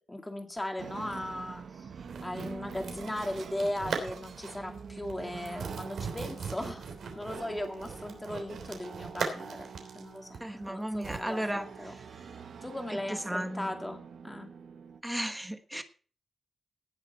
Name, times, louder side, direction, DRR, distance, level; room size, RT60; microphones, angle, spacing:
voice 1, 0.1-1.9 2.2-6.9 7.2-14.5, left 1 dB, 10° left, 3 dB, 2.2 m, -38 dB
sound 1, 0.8-15.0, right 6 dB, 60° right, 1.1 m, -46 dB
sound 2, 2.1-4.7 5.0-5.1 5.4-11.2, right 5 dB, 80° right, 3.2 m, -39 dB
voice 2, 10.4-12.0 12.9-13.7 15.0-15.8, right 1 dB, 5° right, 8 dB, 1.2 m, -35 dB
18.0 x 7.2 x 4.4 m, 0.39 s
wide cardioid pair, 165°, 0 cm